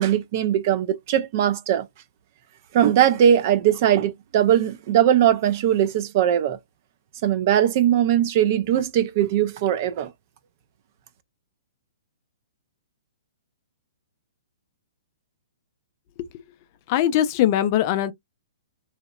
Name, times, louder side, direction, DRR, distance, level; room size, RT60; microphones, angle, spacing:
voice 1, 0.0-1.9 2.7-6.6 7.2-10.1, right 10 dB, 40° right, 0.4 m, -20 dB
voice 2, 16.9-18.1, left 11 dB, 35° left, 0.3 m, -21 dB
2.8 x 2.0 x 2.3 m
hypercardioid pair, 160°, 2 cm